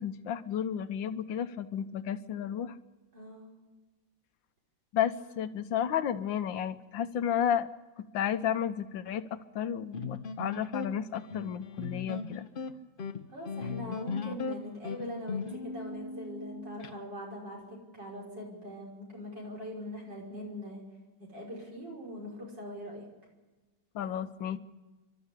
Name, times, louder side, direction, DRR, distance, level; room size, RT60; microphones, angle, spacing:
voice 1, 0.0-2.7 4.9-7.7 8.0-12.5 13.9-14.0 14.3-14.4 23.9-24.6, left 9 dB, 80° left, 11 dB, 1.6 m, -32 dB
voice 2, 3.1-3.5 5.2-5.3 13.3-20.8 21.2-23.0, equal, 60° right, -3 dB, 6.1 m, -42 dB
sound 1, 9.9-16.9, left 4 dB, 40° left, 0.8 m, -38 dB
30.0 x 12.5 x 8.4 m, 1.2 s
omnidirectional pair, 2.1 m